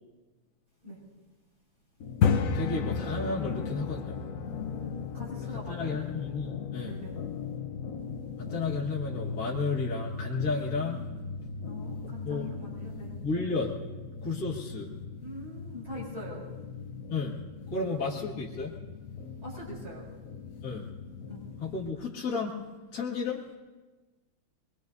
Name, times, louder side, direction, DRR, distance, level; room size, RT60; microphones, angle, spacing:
sound 1, 2.0-21.9, left 5 dB, 80° left, 0.7 m, -36 dB
voice 1, 2.5-4.2 5.5-7.0 8.4-11.1 12.2-12.6 13.2-13.7 14.2-14.9 17.1-17.4 17.7-18.8 20.6-20.9 21.6-22.6 22.9-23.5, left 4 dB, 45° left, -5 dB, 2.2 m, -32 dB
voice 2, 4.5-6.0 6.8-7.2 11.6-13.1 15.2-16.4 17.7-17.9 19.4-20.1 21.3-21.4, left 2 dB, 40° right, -7 dB, 6.9 m, -43 dB
24.0 x 22.0 x 2.7 m, 1.2 s
omnidirectional pair, 2.3 m